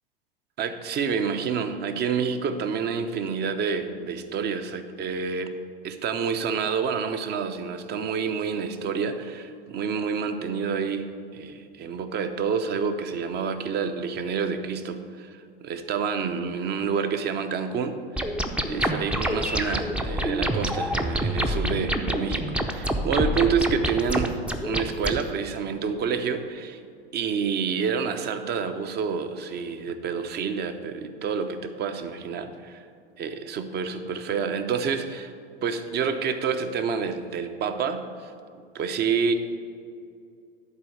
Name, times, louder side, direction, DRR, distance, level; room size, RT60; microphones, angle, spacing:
voice 1, 0.6-5.6 5.8-15.3 15.6-18.3 18.6-26.8 27.1-32.8 33.2-35.3 35.6-38.3 38.7-39.3, right 6 dB, 35° right, 9 dB, 0.8 m, -28 dB
sound 1, 18.2-25.2, equal, 5° right, 0.6 m, -27 dB
11.0 x 4.5 x 6.5 m, 2.4 s
hypercardioid pair, 90°, 30 cm